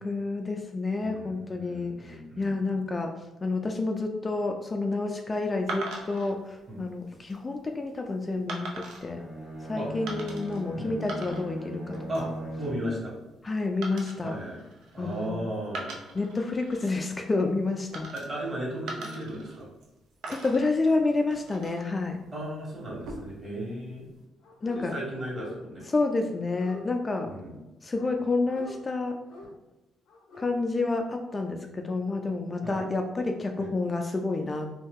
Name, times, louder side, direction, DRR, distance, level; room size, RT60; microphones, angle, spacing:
voice 1, 0.0-3.1 3.4-9.2 9.6-12.4 13.4-14.4 15.0-15.5 16.1-18.1 20.3-22.2 24.6-24.9 25.9-27.3 27.8-29.2 30.4-34.8, left 3 dB, 30° left, 3 dB, 0.4 m, -29 dB
voice 2, 1.0-2.8 6.7-6.8 9.8-9.9 10.8-11.0 12.1-12.2 12.6-13.1 14.2-14.6 14.9-15.9 18.1-19.7 22.3-24.1 24.7-25.8 27.3-27.5 32.6-32.8 33.6-33.7, right 1 dB, 35° right, -4 dB, 1.5 m, -35 dB
sound 1, 5.7-6.3 7.0-7.4 8.5-9.1 10.1-10.6 10.9-11.7 11.9-12.4 13.8-15.3 15.7-16.9 17.9-18.5 18.9-19.9 20.2-21.9 22.9-23.5, right 2 dB, 85° right, 0.6 m, -40 dB
Bowed string instrument, 9.1-12.9, right 1 dB, 60° right, 1.1 m, -38 dB
Dog, 24.4-24.9 25.1-25.9 26.2-27.2 27.9-28.8 29.3-29.5 30.1-30.5 30.8-30.9, left 2 dB, 75° left, 0.6 m, -47 dB
2.7 x 2.3 x 3.5 m, 1.0 s
cardioid pair, 75°, 0 cm